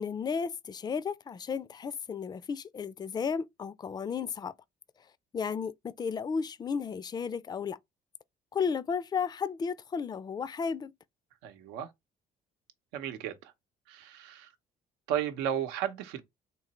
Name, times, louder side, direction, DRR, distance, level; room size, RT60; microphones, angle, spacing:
voice 1, 0.0-4.5 5.3-7.8 8.5-10.9, left 6 dB, 25° left, 0.4 m, -33 dB
voice 2, 11.4-11.9 12.9-13.3 13.9-14.5 15.1-16.2, right 10 dB, 90° right, 0.8 m, -33 dB
3.8 x 2.9 x 4.1 m
supercardioid pair, 85°, 16 cm